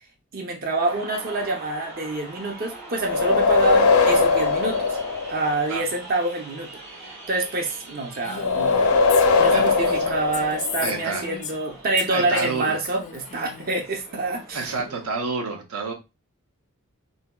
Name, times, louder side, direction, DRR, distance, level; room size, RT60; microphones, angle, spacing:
voice 1, 0.3-5.0 5.3-6.7 7.3-8.8 9.4-14.7, right 2 dB, 40° right, 0.5 m, -27 dB
sound 1, 0.9-15.1, right 2 dB, 65° right, 1.3 m, -42 dB
sound 2, 3.0-5.8 8.4-11.1, left 4 dB, 85° left, 0.6 m, -20 dB
Female speech woman speaking, 8.2-11.7 12.0-13.8, left 6 dB, 35° left, 0.4 m, -36 dB
voice 2, 9.5-9.9 10.8-11.2 12.1-12.7 14.5-15.9, right 4 dB, 90° right, 0.7 m, -29 dB
3.9 x 2.1 x 2.2 m
head